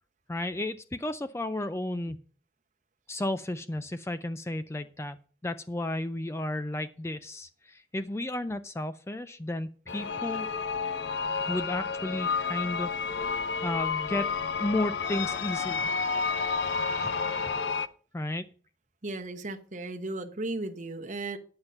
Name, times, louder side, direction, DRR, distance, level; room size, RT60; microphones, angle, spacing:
voice 1, 0.3-2.2 3.1-5.2 5.4-10.5 11.5-12.9 13.2-14.3 14.6-15.9 16.9-17.1 17.4-17.5 18.1-18.5, left 1 dB, 15° left, 0.3 m, -33 dB
sound 1, 9.9-17.9, left 5 dB, 65° left, 0.6 m, -30 dB
voice 2, 19.0-21.4, right 2 dB, 40° right, 0.9 m, -35 dB
9.6 x 7.3 x 5.3 m
head